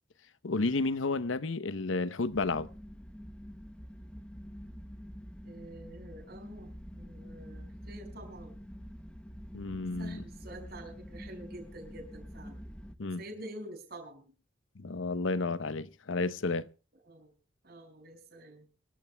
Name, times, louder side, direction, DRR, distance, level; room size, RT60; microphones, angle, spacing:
voice 1, 0.4-2.7 9.5-10.2 13.0-13.2 14.8-16.7, left 3 dB, 85° left, 0.8 m, -31 dB
sound 1, 2.3-13.0, equal, 5° left, 0.9 m, -47 dB
voice 2, 5.4-8.5 10.0-12.6 13.2-14.2 17.1-17.3 17.6-18.6, right 1 dB, 55° right, 5.6 m, -47 dB
25.5 x 14.0 x 2.3 m
head